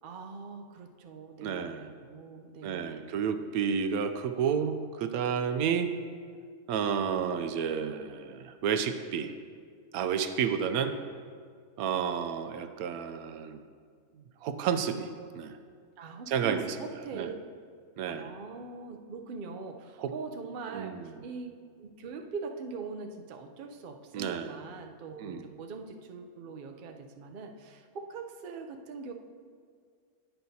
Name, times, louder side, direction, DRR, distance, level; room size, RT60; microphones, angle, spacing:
voice 1, 0.0-3.1 16.0-17.4 18.1-29.1, right 4 dB, 55° right, 4 dB, 0.6 m, -42 dB
voice 2, 1.4-1.9 2.6-5.9 6.7-9.3 9.9-11.0 11.8-13.6 14.4-15.1 15.3-15.6 16.3-16.7 17.1-17.3 18.0-18.3 20.0-20.1 20.7-21.1 24.1-24.6 25.2-25.5, right 7 dB, 80° right, 8 dB, 1.0 m, -31 dB
10.0 x 9.1 x 2.8 m, 2.1 s
omnidirectional pair, 1.5 m